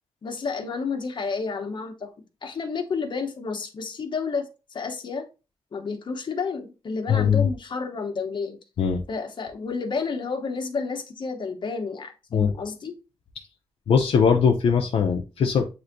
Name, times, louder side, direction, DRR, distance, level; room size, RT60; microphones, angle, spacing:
voice 1, 0.2-2.1 2.4-5.3 5.7-8.6 9.1-12.9, left 4 dB, 50° left, 4 dB, 0.9 m, -30 dB
voice 2, 7.1-7.5 8.8-9.0 12.3-12.5 13.9-15.7, left 6 dB, 75° left, 2 dB, 0.5 m, -20 dB
7.6 x 2.6 x 2.6 m, 0.30 s
wide cardioid pair, 120°, 10 cm